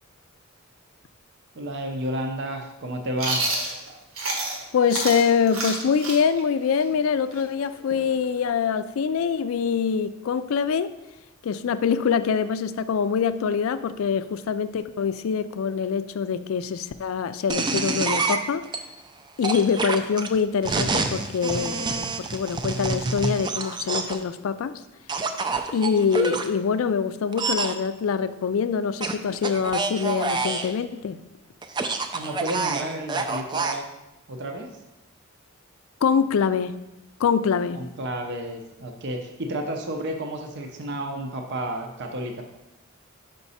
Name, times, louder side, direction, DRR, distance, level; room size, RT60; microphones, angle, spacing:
voice 1, 1.5-3.5 32.1-33.9 34.3-34.7 37.7-42.4, right 1 dB, 55° right, 0.7 m, -31 dB
Chewing mastication, 3.2-4.6 4.9-8.5, right 2 dB, 80° right, 1.4 m, -29 dB
voice 2, 4.7-10.9 11.4-18.6 19.4-24.7 25.7-31.2 36.0-36.7 37.2-37.9, left 6 dB, 70° left, 0.3 m, -24 dB
sound 1, 17.5-18.8 19.4-24.2 25.1-26.5 27.3-27.7 29.0-30.7 31.6-33.8, right 3 dB, 20° right, 0.4 m, -27 dB
5.8 x 5.3 x 4.1 m
head